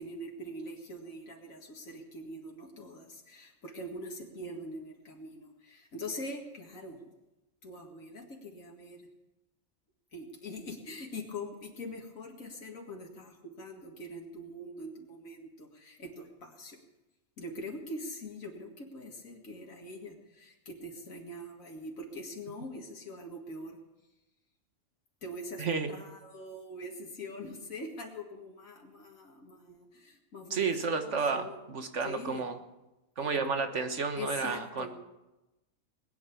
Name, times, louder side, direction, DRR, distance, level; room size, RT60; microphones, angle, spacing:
voice 1, 0.0-7.0 7.6-9.1 10.1-16.8 17.4-23.8 25.2-31.6 32.0-32.4 34.2-34.9, left 1 dB, 80° left, 0 dB, 2.4 m, -43 dB
voice 2, 25.6-25.9 30.5-32.6 33.2-34.9, right 5 dB, 65° right, 7 dB, 1.7 m, -31 dB
21.0 x 9.2 x 7.1 m, 0.99 s
omnidirectional pair, 1.4 m